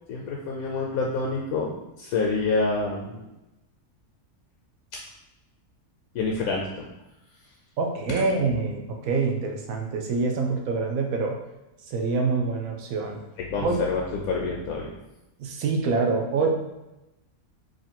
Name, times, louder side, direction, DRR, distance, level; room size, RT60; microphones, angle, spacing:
voice 1, 0.1-1.7 2.0-3.3 6.1-6.9 13.4-14.9, left 3 dB, 80° left, -2 dB, 1.0 m, -27 dB
voice 2, 7.8-11.4 11.9-13.2 13.5-13.8 15.4-16.5, right 4 dB, 75° right, 2 dB, 1.0 m, -26 dB
3.0 x 2.6 x 4.2 m, 0.97 s
omnidirectional pair, 1.5 m